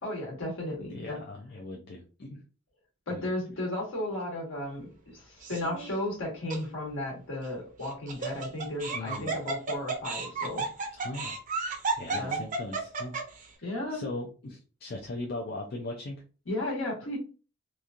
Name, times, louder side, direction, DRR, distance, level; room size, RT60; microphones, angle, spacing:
voice 1, 0.0-1.2 3.1-10.7 12.1-12.4 13.6-14.1 16.5-17.2, left 1 dB, 70° left, -2 dB, 1.3 m, -34 dB
voice 2, 0.9-2.4 3.1-3.3 8.9-9.4 11.0-11.3 12.0-13.1 13.6-16.2, left 2 dB, 55° left, 0 dB, 0.5 m, -39 dB
Laughter, 5.4-5.9 6.5-6.6 7.8-13.4, right 4 dB, 40° right, 0.6 m, -32 dB
3.0 x 2.5 x 2.4 m, 0.36 s
head